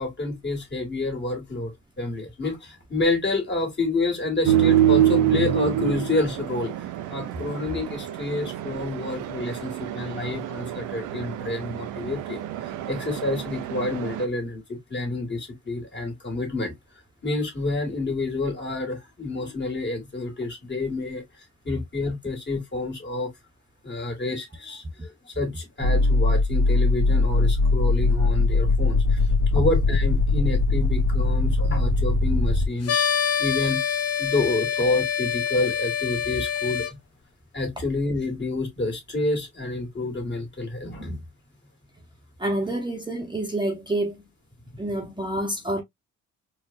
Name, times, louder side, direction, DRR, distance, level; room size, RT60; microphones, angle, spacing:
voice 1, 0.0-6.7 7.1-16.7 17.2-23.3 23.8-29.2 29.5-33.1 33.4-36.8 37.5-41.2, left 2 dB, 35° left, 2.1 m, -28 dB
sound 1, 4.4-14.2, right 11 dB, 85° right, 0.6 m, -26 dB
sound 2, 25.8-32.7, left 3 dB, 75° left, 1.0 m, -21 dB
sound 3, 32.8-36.9, left 8 dB, 55° left, 0.7 m, -26 dB
voice 2, 42.4-44.2 44.8-45.8, right 1 dB, 15° right, 0.9 m, -27 dB
4.4 x 2.5 x 2.5 m
cardioid pair, 90°, 30 cm